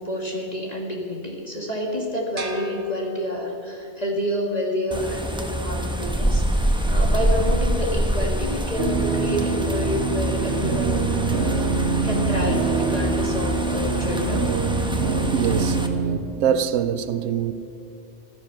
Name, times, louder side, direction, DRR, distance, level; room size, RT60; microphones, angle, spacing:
voice 1, 0.0-14.5, left 1 dB, 35° left, 1.7 m, -28 dB
sound 1, 2.4-3.8, right 4 dB, 45° right, 1.4 m, -39 dB
sound 2, 4.9-15.9, right 1 dB, 5° right, 1.0 m, -25 dB
sound 3, 8.8-16.2, right 4 dB, 65° right, 1.1 m, -25 dB
voice 2, 15.3-15.8 16.4-17.5, right 8 dB, 85° right, 1.0 m, -23 dB
15.5 x 13.0 x 5.7 m
omnidirectional pair, 1.3 m